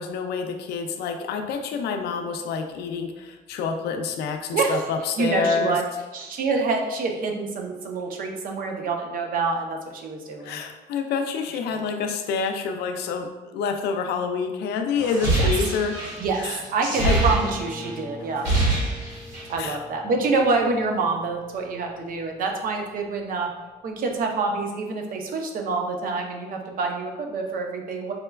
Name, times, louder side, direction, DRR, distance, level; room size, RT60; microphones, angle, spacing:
voice 1, 0.0-5.8 10.4-16.0 16.4-16.6 17.0-17.2 19.6-19.8, left 5 dB, 75° left, 6 dB, 0.4 m, -27 dB
voice 2, 5.2-5.8 6.1-10.6 11.7-11.8 15.4-15.5 16.2-18.4 19.5-23.5 23.8-28.1, right 4 dB, 55° right, 2 dB, 0.6 m, -26 dB
sound 1, 15.0-17.9 18.2-19.6, right 2 dB, 75° right, 1.3 m, -24 dB
Acoustic guitar, 16.9-22.4, left 1 dB, 20° left, 0.8 m, -39 dB
5.0 x 2.2 x 2.2 m, 1.1 s
cardioid pair, 110°, 17 cm